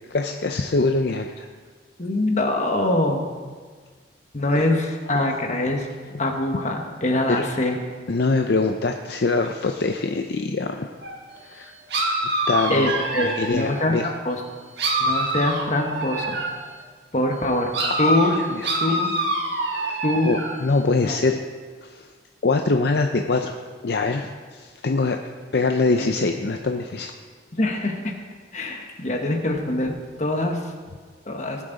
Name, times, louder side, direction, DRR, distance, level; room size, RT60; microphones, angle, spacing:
voice 1, 0.1-1.5 4.5-4.7 5.1-5.2 7.3-7.4 8.1-10.9 11.4-11.7 12.5-12.9 13.2-14.0 17.8-19.0 19.7-21.4 21.8-22.1 22.4-23.6 23.8-25.2 25.5-27.1, left 3 dB, 60° left, 5 dB, 0.5 m, -24 dB
voice 2, 2.0-3.3 4.3-5.9 6.2-7.8 12.7-14.4 15.0-16.4 17.1-17.7 18.0-18.4 18.8-19.1 20.0-20.4 21.0-21.2 26.0-26.1 27.6-28.1 28.5-29.9 30.2-30.6 31.3-31.6, left 1 dB, 40° left, 3 dB, 1.3 m, -23 dB
sound 1, 11.0-11.2 11.9-14.1 14.8-16.7 17.7-20.6, right 1 dB, 65° right, 1.7 m, -25 dB
19.0 x 7.5 x 4.0 m, 1.5 s
head